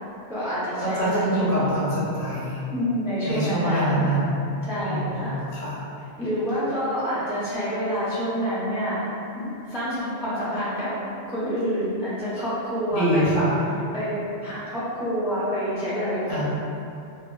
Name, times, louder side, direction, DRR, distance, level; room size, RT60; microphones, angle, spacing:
voice 1, 0.3-1.7 2.7-4.1 4.6-5.4 6.2-9.1 9.3-10.9 11.3-13.4 13.9-14.1 14.4-16.4, equal, 5° right, -11 dB, 0.3 m, -27 dB
voice 2, 0.8-2.6 3.2-4.4 4.8-5.7 12.9-13.5 16.3-16.5, right 1 dB, 55° left, -10 dB, 1.0 m, -24 dB
2.6 x 2.1 x 2.2 m, 2.6 s
omnidirectional pair, 1.1 m